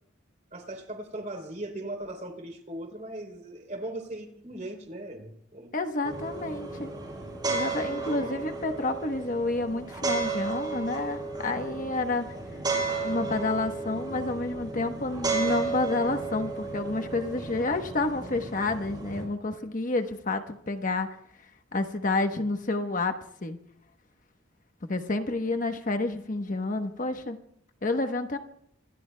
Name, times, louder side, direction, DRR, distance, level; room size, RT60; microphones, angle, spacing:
voice 1, 0.5-5.7 7.8-8.5 17.4-17.6 19.5-19.7, right 1 dB, 35° right, 5 dB, 3.3 m, -39 dB
voice 2, 5.7-6.9 7.4-12.4 13.0-21.1 21.7-23.6 24.9-27.4 27.8-28.4, left 2 dB, 40° left, 6 dB, 1.0 m, -29 dB
sound 1, 6.0-19.2, right 3 dB, 20° right, 6.2 m, -33 dB
27.0 x 23.5 x 2.2 m, 0.69 s
head